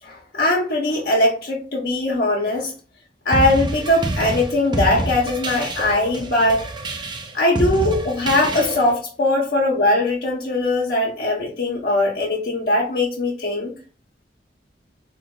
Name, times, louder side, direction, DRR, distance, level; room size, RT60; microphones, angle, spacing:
voice 1, 0.0-2.7 3.2-7.1 7.3-13.7, left 1 dB, 60° left, -2 dB, 0.9 m, -20 dB
sound 1, 3.3-9.0, right 2 dB, 25° right, 0.5 m, -27 dB
3.8 x 3.0 x 3.8 m, 0.39 s
head